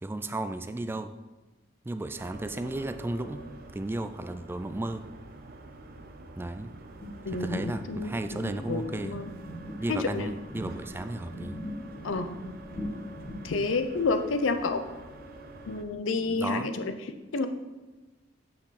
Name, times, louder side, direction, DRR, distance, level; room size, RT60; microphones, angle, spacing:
voice 1, 0.0-1.1 1.9-3.4 3.7-5.1 6.4-6.7 7.3-9.2 9.8-11.6 16.2-16.7, right 2 dB, 10° right, 9 dB, 0.3 m, -34 dB
sound 1, 2.1-15.8, right 1 dB, 50° right, 0.6 m, -47 dB
sound 2, 7.0-11.0 11.3-14.0, equal, 35° left, 1.8 m, -40 dB
voice 2, 7.2-9.3 9.9-10.3 12.0-12.3 13.4-14.9 15.7-16.9 17.3-17.5, left 3 dB, 85° left, 8 dB, 0.6 m, -30 dB
6.2 x 6.0 x 4.1 m, 1.2 s
head